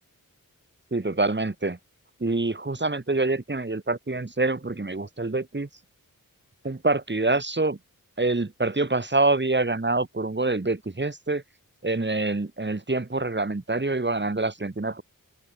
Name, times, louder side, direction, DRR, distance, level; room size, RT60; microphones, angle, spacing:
voice 1, 0.9-1.8 2.2-5.7 6.6-7.8 8.2-11.4 11.8-15.0, right 2 dB, 30° right, 7.4 m, -26 dB
open air
wide cardioid pair, 90°, 34 cm